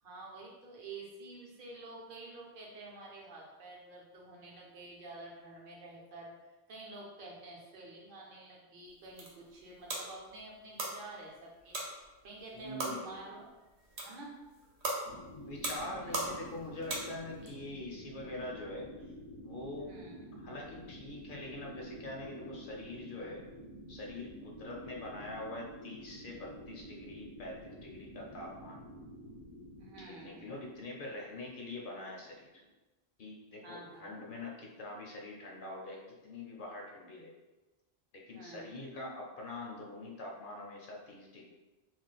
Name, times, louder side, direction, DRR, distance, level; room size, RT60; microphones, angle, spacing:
voice 1, 0.0-11.8 12.2-13.5 14.0-14.4 19.8-20.3 29.8-30.5 33.6-34.2 38.3-38.7, right 2 dB, 55° right, -2 dB, 0.8 m, -49 dB
sound 1, 8.9-17.5, right 2 dB, 85° right, 1.0 m, -41 dB
voice 2, 12.5-13.4 15.1-18.9 19.4-20.0 20.4-23.4 23.9-28.8 30.0-32.6 33.2-37.3 38.1-41.5, left 2 dB, 60° left, -1 dB, 0.6 m, -44 dB
sound 2, 15.0-32.7, equal, 80° left, 1.0 m, -50 dB
2.5 x 2.0 x 3.8 m, 1.1 s
omnidirectional pair, 1.1 m